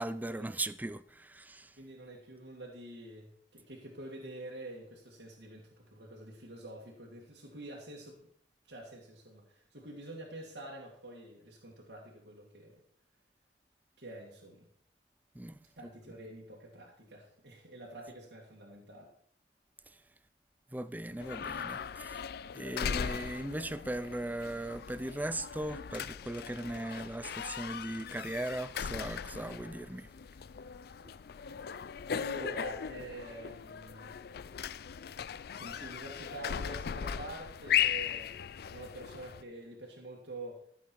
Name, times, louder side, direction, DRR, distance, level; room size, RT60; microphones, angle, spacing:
voice 1, 0.0-1.8 15.3-16.1 19.9-20.0 20.7-22.2 22.5-30.1, right 1 dB, 10° right, 0.5 m, -38 dB
voice 2, 1.8-8.3 8.7-12.8 14.0-14.7 15.8-19.1 21.1-21.2 32.1-34.4 35.6-40.6, right 1 dB, 70° right, 2.2 m, -47 dB
sound 1, 21.2-39.4, left 8 dB, 60° left, 0.4 m, -38 dB
14.5 x 7.4 x 4.6 m
head